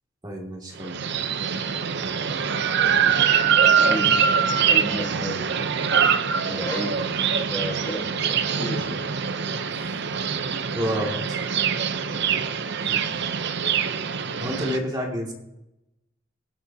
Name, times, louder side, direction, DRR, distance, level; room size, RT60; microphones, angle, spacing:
voice 1, 0.2-1.0 10.8-11.4 12.8-12.9 14.4-15.3, equal, 20° right, 0 dB, 2.2 m, -29 dB
sound 1, 0.8-14.8, right 7 dB, 55° right, 0.7 m, -23 dB
voice 2, 2.8-3.2 3.8-4.2 4.6-5.5 6.4-9.0 12.8-13.3, equal, 10° left, -2 dB, 1.5 m, -33 dB
19.5 x 8.5 x 2.8 m, 0.89 s
head